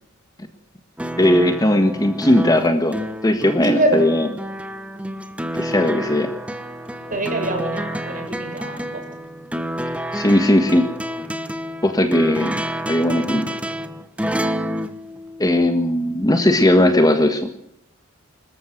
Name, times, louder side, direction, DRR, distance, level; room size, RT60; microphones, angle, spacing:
sound 1, 1.0-15.9 17.1-17.2, equal, 5° right, 1.2 m, -29 dB
voice 1, 1.2-3.0 3.2-4.3 5.6-6.3 10.1-10.8 11.8-12.5 12.9-13.5 15.4-17.5, left 1 dB, 15° left, 7 dB, 1.6 m, -17 dB
voice 2, 3.6-4.0 7.1-8.8, right 1 dB, 35° right, 4 dB, 6.6 m, -23 dB
26.0 x 14.0 x 7.9 m, 0.72 s
head